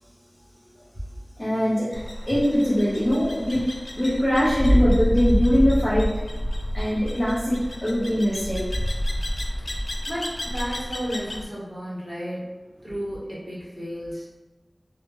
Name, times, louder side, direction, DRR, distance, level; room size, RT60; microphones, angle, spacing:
voice 1, 1.4-3.7 3.9-6.1 6.7-8.6, equal, 35° left, -11 dB, 0.9 m, -22 dB
sound 1, 1.9-11.4, equal, 65° left, 0.3 m, -27 dB
voice 2, 9.6-12.5 12.8-14.3, equal, 15° right, -8 dB, 1.4 m, -33 dB
2.8 x 2.4 x 3.1 m, 1.1 s
wide cardioid pair, 55°, 0 cm